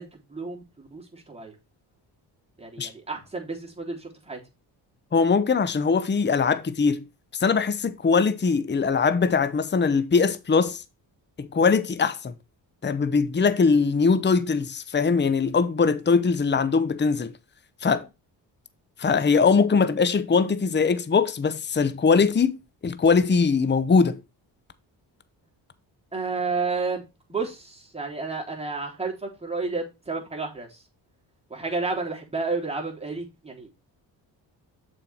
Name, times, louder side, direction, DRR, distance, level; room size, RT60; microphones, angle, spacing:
voice 1, 0.0-1.5 2.6-4.4 26.1-27.0 27.3-30.8 31.5-33.7, right 4 dB, 10° right, 3.5 m, -31 dB
voice 2, 5.1-7.1 7.3-10.8 11.4-12.3 12.8-17.3 17.8-18.1 19.0-24.2, left 5 dB, 20° left, 0.8 m, -21 dB
6.8 x 5.0 x 4.3 m
supercardioid pair, 50°, 49 cm